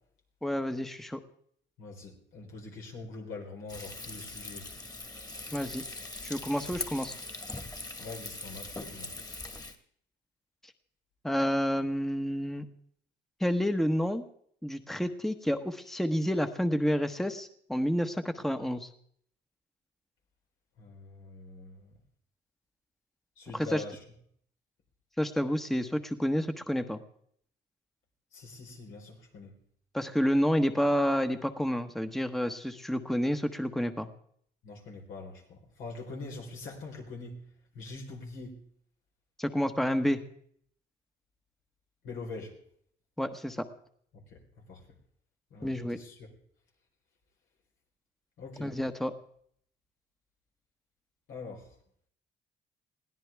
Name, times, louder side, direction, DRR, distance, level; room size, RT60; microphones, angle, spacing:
voice 1, 0.4-1.2 5.5-5.8 6.2-7.1 11.2-12.7 13.4-14.2 14.6-18.9 23.5-23.8 25.2-27.0 29.9-34.1 39.4-40.2 43.2-43.7 45.6-46.0 48.6-49.1, equal, ahead, 8 dB, 1.1 m, -29 dB
voice 2, 1.8-4.7 8.0-9.1 20.8-21.9 23.4-24.0 28.3-29.6 34.6-37.4 37.7-38.6 42.0-42.5 44.1-44.4 44.7-44.8 45.5-46.3 48.4-48.7 51.3-51.7, left 3 dB, 85° left, 1 dB, 4.2 m, -44 dB
Frying (food), 3.7-9.7, left 2 dB, 20° left, 1.8 m, -41 dB
21.5 x 16.0 x 3.5 m, 0.63 s
cardioid pair, 90°, 20 cm